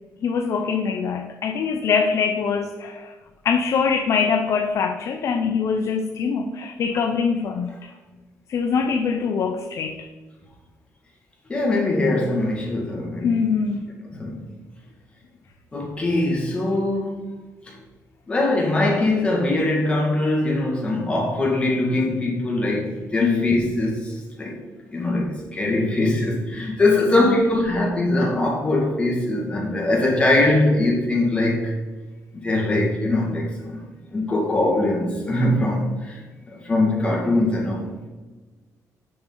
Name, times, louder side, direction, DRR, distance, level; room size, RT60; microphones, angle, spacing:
voice 1, 0.2-3.1 3.4-7.7 8.5-10.0 13.2-13.8 23.2-23.6 27.1-27.4, left 5 dB, 55° left, 5 dB, 0.5 m, -23 dB
voice 2, 11.5-13.4 14.1-14.4 15.7-17.3 18.3-24.5 24.9-31.7 32.4-33.8 34.1-36.2 36.6-37.9, left 2 dB, 20° left, -3 dB, 1.8 m, -22 dB
6.9 x 6.1 x 3.8 m, 1.3 s
cardioid pair, 140°, 6 cm